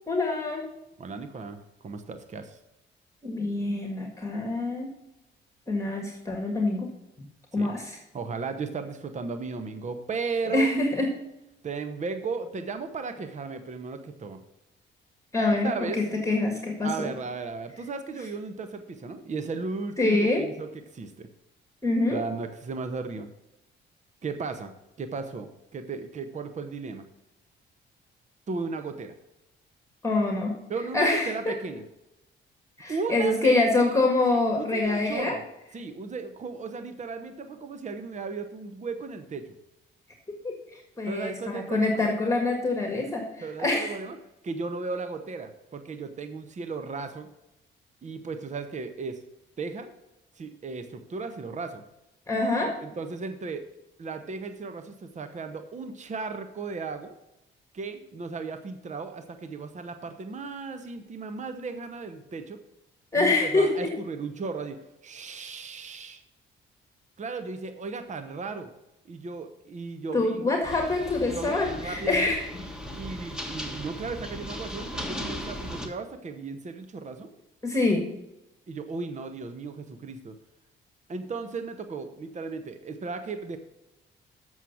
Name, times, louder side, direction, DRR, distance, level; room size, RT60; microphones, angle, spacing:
voice 1, 0.1-0.6 3.2-4.9 5.7-6.9 7.5-8.0 10.5-11.1 15.3-17.1 20.0-20.4 21.8-22.2 30.0-30.5 30.9-31.5 32.8-35.3 40.3-44.0 52.3-52.7 63.1-63.9 70.1-72.4 77.6-78.0, left 2 dB, 15° left, 2 dB, 1.6 m, -25 dB
voice 2, 1.0-2.6 7.5-7.7 8.1-10.7 11.6-14.4 15.6-16.1 16.8-21.3 22.1-23.3 24.2-24.7 25.0-27.0 28.5-29.1 30.7-31.8 32.9-34.0 34.3-35.4 35.7-39.6 41.1-42.0 43.4-44.2 44.4-47.3 48.0-49.2 49.6-49.9 50.3-51.8 52.8-53.6 54.0-57.1 57.7-62.6 63.1-66.2 67.2-68.7 69.0-70.4 71.2-72.3 72.9-77.3 78.7-80.4 81.1-83.6, right 4 dB, 35° right, 8 dB, 0.9 m, -35 dB
sound 1, 70.6-75.9, equal, 5° right, 1.5 m, -37 dB
7.4 x 6.3 x 7.0 m, 0.93 s
cardioid pair, 90°, 20 cm